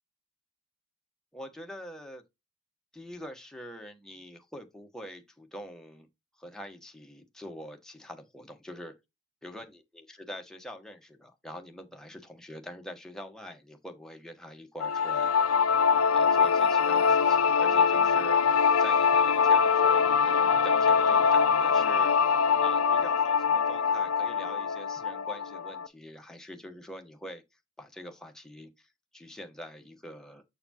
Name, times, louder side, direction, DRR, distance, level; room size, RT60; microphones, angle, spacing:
voice 1, 1.3-2.2 2.9-6.1 6.4-8.9 9.4-15.3 16.1-22.3 22.6-27.4 27.8-30.4, equal, 5° left, 1.2 m, -44 dB
sound 1, 14.8-25.9, left 6 dB, 85° left, 0.7 m, -23 dB
6.9 x 6.7 x 2.9 m
head